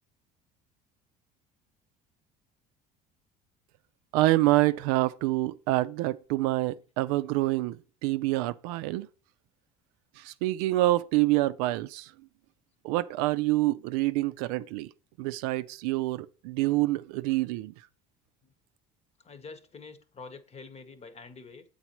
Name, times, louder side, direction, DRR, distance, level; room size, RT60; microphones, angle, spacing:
voice 1, 4.1-9.1 10.2-12.1 12.8-14.9 15.2-17.7, right 17 dB, 75° right, 0.4 m, -27 dB
voice 2, 19.2-21.6, left 4 dB, 35° left, 1.0 m, -46 dB
8.0 x 4.1 x 3.0 m
hypercardioid pair, 75°, 20 cm